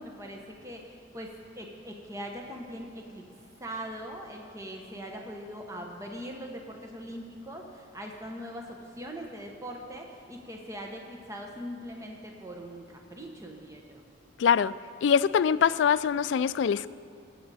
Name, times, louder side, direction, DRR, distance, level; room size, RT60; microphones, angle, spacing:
voice 1, 0.0-3.3 3.6-14.0, equal, 15° right, 1 dB, 1.0 m, -41 dB
voice 2, 14.4-14.7 15.0-16.9, left 7 dB, 70° left, 16 dB, 0.3 m, -23 dB
19.5 x 7.9 x 4.2 m, 2.5 s
head